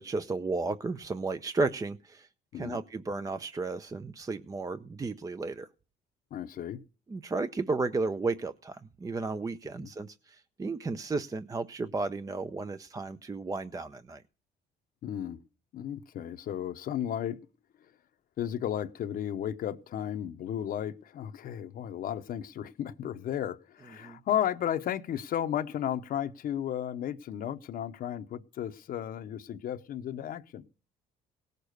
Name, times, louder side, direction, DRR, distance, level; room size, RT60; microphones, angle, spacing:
voice 1, 0.0-2.3 2.5-5.7 7.1-14.2 24.0-24.2, right 3 dB, 20° right, 0.6 m, -33 dB
voice 2, 6.3-6.8 9.8-9.9 15.0-15.4 15.7-17.4 17.8-17.9 18.4-30.6, left 10 dB, 60° left, 0.9 m, -34 dB
18.0 x 6.7 x 6.5 m
cardioid pair, 110°, 17 cm